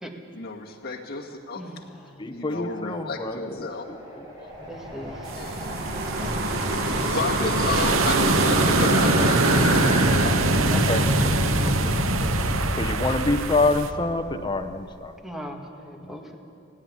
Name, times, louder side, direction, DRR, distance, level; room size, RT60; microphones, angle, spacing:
voice 1, 0.3-1.8 2.2-3.8 5.3-5.9 7.1-12.3, left 4 dB, 50° left, 0 dB, 2.1 m, -33 dB
sound 1, 2.1-10.1, equal, 20° right, 5.1 m, -34 dB
voice 2, 2.2-3.7 4.6-4.7 10.7-11.1 12.8-15.1 16.0-16.2, left 2 dB, 20° left, 6 dB, 1.1 m, -26 dB
voice 3, 4.7-5.1 6.2-6.5 15.2-16.4, equal, ahead, 2 dB, 1.9 m, -38 dB
sound 2, 4.7-14.7, equal, 55° right, 1.7 m, -25 dB
sound 3, 5.3-13.9, right 4 dB, 75° right, 0.9 m, -26 dB
17.5 x 16.5 x 9.9 m, 2.5 s
head